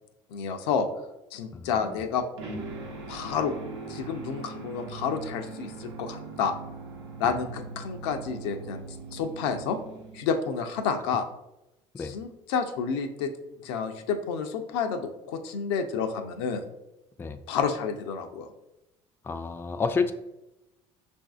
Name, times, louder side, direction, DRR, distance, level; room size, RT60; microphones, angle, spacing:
voice 1, 0.3-0.9 1.3-2.2 3.1-3.5 3.9-6.5 7.2-8.8 9.1-9.8 10.1-11.2 12.0-13.3 13.6-16.6 17.5-18.5, left 6 dB, 75° left, 7 dB, 0.5 m, -30 dB
voice 2, 1.5-2.0 7.2-7.3 11.9-12.1 17.2-17.4 19.2-20.1, left 4 dB, 15° left, 9 dB, 0.3 m, -30 dB
sound 1, 2.4-10.6, right 4 dB, 90° right, 0.8 m, -41 dB
5.7 x 2.6 x 2.3 m, 0.92 s
hypercardioid pair, 70°, 14 cm